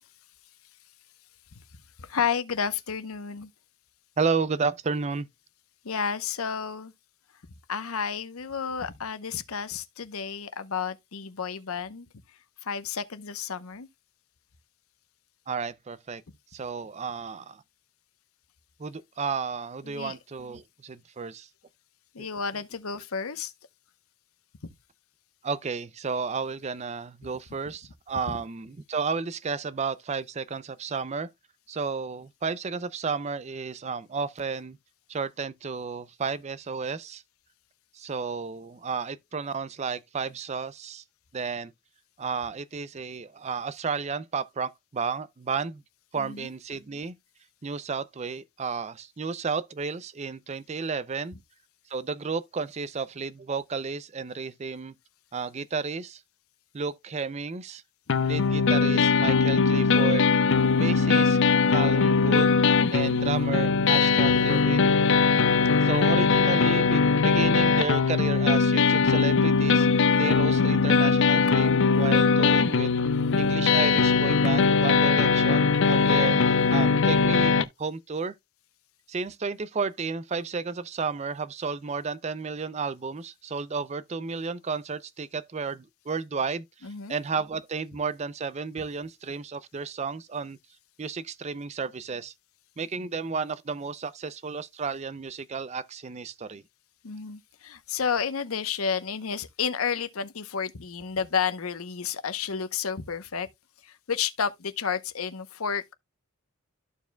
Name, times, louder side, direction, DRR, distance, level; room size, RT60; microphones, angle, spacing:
voice 1, 2.0-3.5 5.8-6.9 7.7-12.1 12.6-13.9 19.8-20.2 22.1-23.5 28.3-28.4 46.1-46.5 63.0-63.4 69.8-69.9 73.0-73.1 76.1-76.5 86.8-87.2 97.0-103.5 103.8-105.9, left 6 dB, 80° left, 0.8 m, -31 dB
voice 2, 4.2-5.3 15.5-16.2 16.5-17.6 18.8-21.5 22.2-22.3 25.4-31.3 31.7-34.8 35.1-37.2 38.0-41.0 41.3-41.7 42.2-45.8 46.1-47.1 47.6-51.3 51.9-54.9 55.3-56.2 56.7-57.8 58.3-60.3 60.8-61.4 61.7-62.5 62.9-64.9 65.8-69.9 70.1-72.9 73.4-78.3 79.1-86.6 87.1-90.6 91.0-92.3 92.8-96.6, right 5 dB, 30° right, 0.4 m, -32 dB
sound 1, 58.1-77.6, left 5 dB, 60° left, 0.5 m, -21 dB
13.5 x 4.7 x 2.2 m
head